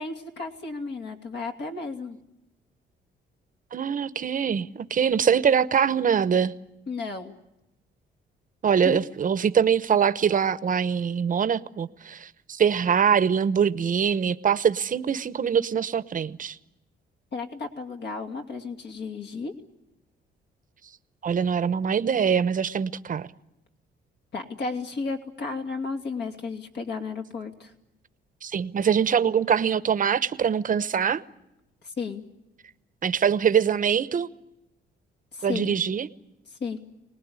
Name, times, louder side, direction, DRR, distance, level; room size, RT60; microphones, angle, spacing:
voice 1, 0.0-2.2 6.9-7.3 8.8-9.0 17.3-19.5 24.3-27.7 31.8-32.2 35.3-35.7 36.5-36.8, left 4 dB, 60° left, 4 dB, 2.7 m, -33 dB
voice 2, 3.7-6.5 8.6-16.6 21.2-23.3 28.4-31.2 33.0-34.3 35.4-36.1, right 7 dB, 45° right, 14 dB, 0.9 m, -23 dB
25.5 x 19.5 x 9.6 m, 0.91 s
cardioid pair, 90°, 20 cm